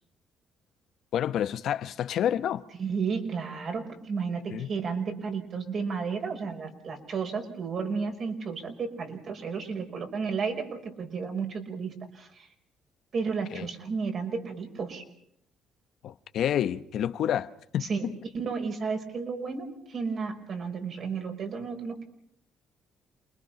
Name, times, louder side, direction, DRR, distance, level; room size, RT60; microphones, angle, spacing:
voice 1, 1.1-2.6 4.5-4.7 13.5-13.7 16.0-17.9, left 10 dB, 70° left, 0.9 m, -29 dB
voice 2, 2.8-12.5 13.1-15.0 17.8-22.1, right 5 dB, 55° right, 5.4 m, -33 dB
28.5 x 22.0 x 5.9 m
cardioid pair, 80°, 0 cm